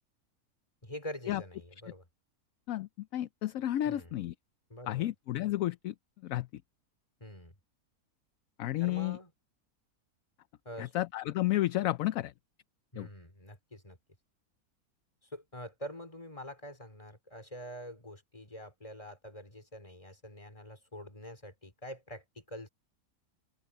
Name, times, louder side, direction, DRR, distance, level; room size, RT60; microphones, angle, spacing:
voice 1, 0.8-2.1 3.8-4.1 4.7-5.1 7.2-7.5 8.8-9.3 10.6-10.9 12.9-14.0 15.2-22.7, equal, 20° left, 4.0 m, -45 dB
voice 2, 2.7-4.3 4.9-5.9 6.2-6.5 8.6-9.2 10.8-12.3 13.0-13.1, left 14 dB, 70° left, 0.9 m, -32 dB
omnidirectional pair, 1.6 m